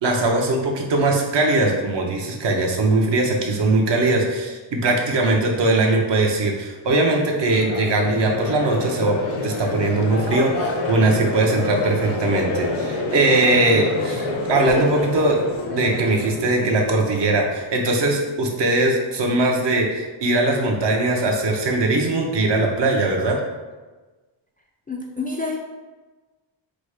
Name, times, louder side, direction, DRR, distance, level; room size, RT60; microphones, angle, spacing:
voice 1, 0.0-9.2 9.4-15.4 15.7-23.4, right 2 dB, 60° right, 0 dB, 1.0 m, -20 dB
Crowd, 7.5-17.6, left 3 dB, 90° left, 1.0 m, -28 dB
voice 2, 24.9-25.6, left 3 dB, 20° left, -1 dB, 0.3 m, -28 dB
5.1 x 2.1 x 4.8 m, 1.2 s
cardioid pair, 110°, 47 cm